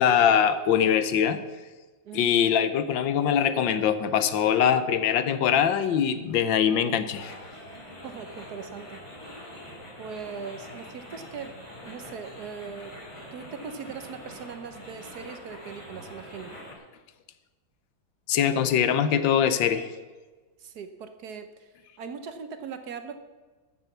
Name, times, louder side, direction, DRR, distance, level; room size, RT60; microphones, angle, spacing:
voice 1, 0.0-1.4 2.1-7.3 18.3-19.9, left 8 dB, 75° left, 12 dB, 1.5 m, -22 dB
sound 1, 7.1-16.7, left 1 dB, 15° left, 3.1 m, -44 dB
voice 2, 8.0-9.0 10.0-13.0 13.3-16.5 20.6-23.2, right 6 dB, 60° right, 9 dB, 1.2 m, -40 dB
13.5 x 6.8 x 7.0 m, 1.3 s
omnidirectional pair, 2.1 m